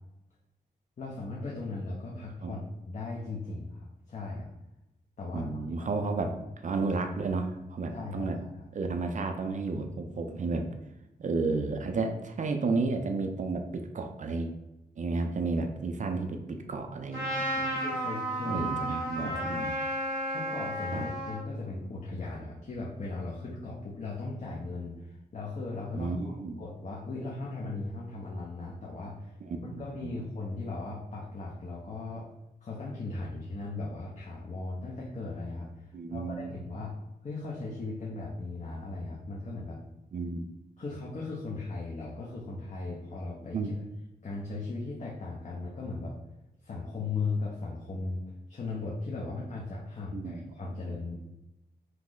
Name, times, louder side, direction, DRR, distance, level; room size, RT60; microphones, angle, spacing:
voice 1, 1.0-4.5 5.2-5.5 5.8-6.1 7.9-8.6 17.7-19.6 20.2-26.2 26.6-29.3 29.6-32.3 32.6-37.0 37.2-39.8 40.8-43.8 44.2-46.2 46.6-51.2, left 3 dB, 45° left, -4 dB, 0.7 m, -37 dB
voice 2, 5.3-8.4 8.7-10.7 11.2-14.5 15.0-17.8 18.5-19.7 20.9-21.1 25.9-26.6 29.4-30.1 35.9-36.5 40.1-40.4 43.5-43.7 50.1-50.7, right 3 dB, 45° right, 5 dB, 0.4 m, -32 dB
Trumpet, 17.1-21.4, right 1 dB, 70° left, 1.5 m, -32 dB
3.0 x 2.0 x 3.7 m, 0.97 s
cardioid pair, 65°, 17 cm